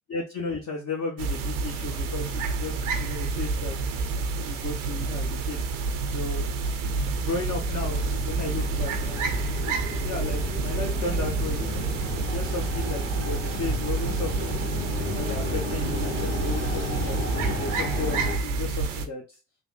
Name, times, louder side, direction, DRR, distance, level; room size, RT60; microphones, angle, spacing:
voice 1, 0.1-3.8 4.5-5.6 6.1-6.5 7.2-11.8 12.2-14.6 15.1-19.4, left 3 dB, 45° left, 0 dB, 0.8 m, -35 dB
sound 1, 1.2-19.1, right 3 dB, 85° right, 0.6 m, -29 dB
sound 2, 7.1-17.7, right 4 dB, 20° right, 0.5 m, -38 dB
sound 3, 7.6-18.4, left 3 dB, 85° left, 1.0 m, -34 dB
3.4 x 2.6 x 2.2 m, 0.30 s
hypercardioid pair, 55°, 36 cm